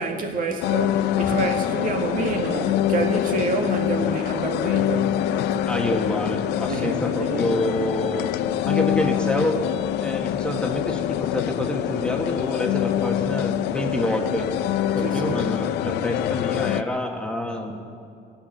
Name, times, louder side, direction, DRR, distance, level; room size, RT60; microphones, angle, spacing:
voice 1, 0.0-5.7 6.7-7.6 15.0-15.4, right 3 dB, 55° right, 1.8 m, -28 dB
sound 1, 0.6-16.8, left 12 dB, 80° left, 0.5 m, -25 dB
voice 2, 5.6-8.3 8.6-9.6 10.0-14.5 14.9-17.8, left 1 dB, 5° left, 1.4 m, -27 dB
17.5 x 7.1 x 9.4 m
cardioid pair, 110°, 17 cm